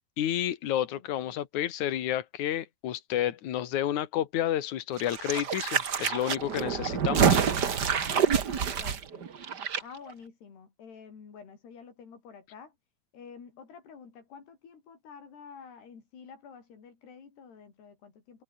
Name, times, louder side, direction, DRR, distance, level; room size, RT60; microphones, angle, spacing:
voice 1, 0.2-7.4, left 11 dB, 55° left, 2.8 m, -30 dB
voice 2, 0.9-1.7 8.5-9.3 9.8-12.8 13.1-18.4, left 6 dB, 85° left, 7.0 m, -49 dB
sound 1, 5.0-9.8 10.1-10.2, right 7 dB, 60° right, 1.1 m, -27 dB
omnidirectional pair, 4.6 m